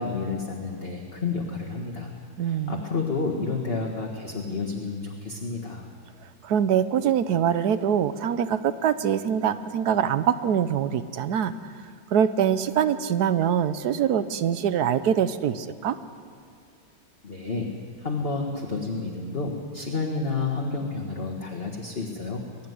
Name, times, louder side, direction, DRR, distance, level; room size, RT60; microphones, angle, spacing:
voice 1, 0.0-2.1 2.4-5.9 17.2-17.7 18.0-22.4, left 4 dB, 30° left, 0 dB, 1.7 m, -30 dB
voice 2, 2.4-2.8 6.4-11.5 12.1-16.0, right 8 dB, 65° right, 13 dB, 1.1 m, -24 dB
22.0 x 13.0 x 9.5 m, 2.2 s
omnidirectional pair, 2.2 m